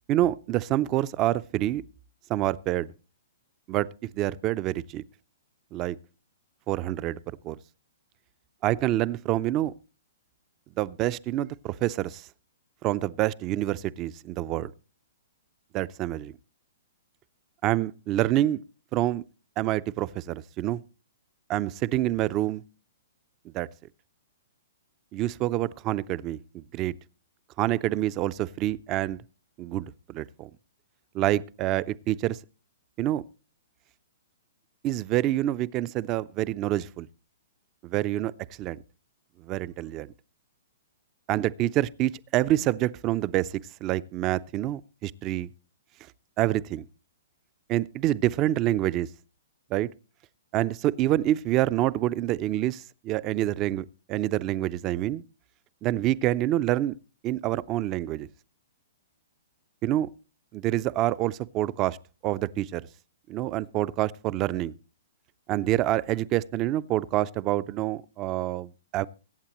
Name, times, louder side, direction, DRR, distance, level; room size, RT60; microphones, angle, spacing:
voice 1, 0.1-1.8 2.3-2.9 3.7-3.9 4.1-5.0 5.7-6.0 6.7-7.2 7.4-7.6 8.6-9.7 10.8-12.3 12.8-14.7 15.7-16.3 17.6-18.6 18.9-19.2 19.6-20.8 21.5-22.6 23.5-23.7 25.1-26.9 27.6-29.2 29.6-30.5 31.1-32.4 33.0-33.2 34.8-37.1 37.8-38.3 38.6-38.8 39.4-40.1 41.3-45.5 46.4-46.9 47.7-49.1 49.7-49.9 50.5-55.2 55.8-56.9 57.2-58.3 59.8-60.1 60.5-62.0 62.2-62.8 63.3-64.7 65.5-69.1, right 14 dB, 30° right, 0.5 m, -27 dB
22.5 x 8.2 x 3.0 m
hypercardioid pair, 140°, 0 cm